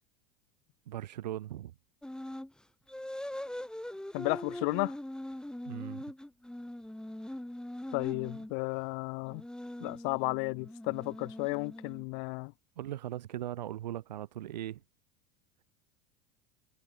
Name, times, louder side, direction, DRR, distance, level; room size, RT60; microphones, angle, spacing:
voice 1, 0.9-1.7 5.7-6.0 12.8-14.8, right 13 dB, 85° right, 0.6 m, -39 dB
sound 1, 2.0-2.5 2.9-8.5 9.2-12.2, left 1 dB, 5° left, 4.6 m, -42 dB
voice 2, 4.1-4.9 7.9-9.4 9.8-12.5, left 40 dB or more, 60° left, 0.5 m, -33 dB
hypercardioid pair, 90°, 21 cm